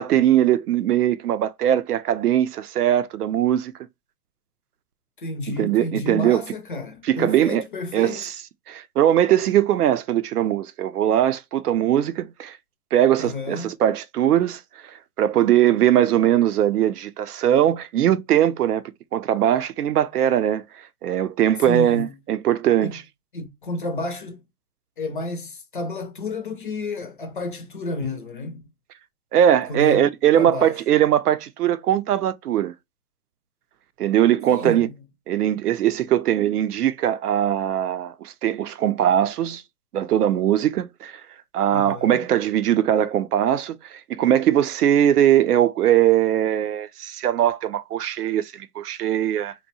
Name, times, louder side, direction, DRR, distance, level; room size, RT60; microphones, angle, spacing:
voice 1, 0.0-3.7 5.6-6.4 7.0-7.6 7.9-8.4 8.7-12.6 12.9-18.8 19.1-20.6 21.0-23.0 29.3-32.7 34.0-34.9 35.3-39.6 39.9-41.2 41.5-49.5, right 11 dB, 85° right, 0.6 m, -20 dB
voice 2, 5.2-8.3 13.2-13.7 21.6-22.2 22.8-23.0 23.3-24.4 25.0-28.6 29.7-30.7 34.5-35.0 41.7-42.2, left 2 dB, 40° left, 0.4 m, -31 dB
2.7 x 2.1 x 2.7 m
hypercardioid pair, 155°, 44 cm